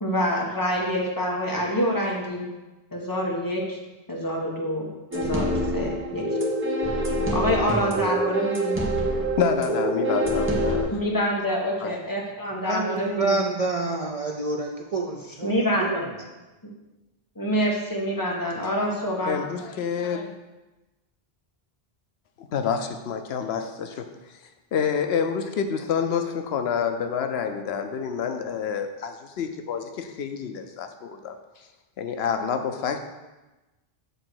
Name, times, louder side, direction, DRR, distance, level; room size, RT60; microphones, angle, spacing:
voice 1, 0.0-2.5 2.9-3.8 4.1-4.9 5.1-6.3 7.3-8.8 10.9-13.4 15.4-16.2 17.4-19.6, equal, 20° left, -2 dB, 1.3 m, -26 dB
sound 1, 5.1-10.8, right 1 dB, 15° right, 1.0 m, -25 dB
voice 2, 9.4-10.9 11.8-11.9 19.3-20.3 22.4-24.1 24.7-31.3 32.0-33.0, left 7 dB, 80° left, 7 dB, 0.9 m, -28 dB
voice 3, 12.7-15.5 15.9-16.0, right 3 dB, 45° right, 1 dB, 0.5 m, -27 dB
6.7 x 3.8 x 6.2 m, 1.1 s
omnidirectional pair, 1.0 m